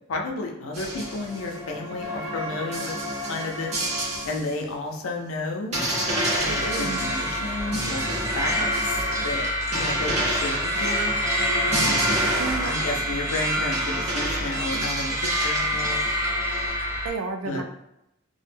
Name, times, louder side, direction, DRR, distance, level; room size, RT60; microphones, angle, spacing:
voice 1, 0.1-2.9 3.3-3.7 4.2-5.8 6.4-9.4 9.7-11.1 11.7-12.1 12.6-16.0 17.4-17.6, left 2 dB, 85° left, 1 dB, 0.5 m, -32 dB
sound 1, 0.7-4.6 5.0-5.1 5.7-16.7, equal, 30° right, 0.7 m, -30 dB
sound 2, 6.4-17.1, equal, 15° right, 0.3 m, -27 dB
voice 2, 6.4-7.0 12.4-12.9 15.6-15.7 17.0-17.7, right 4 dB, 90° right, 6 dB, 0.4 m, -32 dB
2.2 x 2.1 x 3.2 m, 0.84 s
head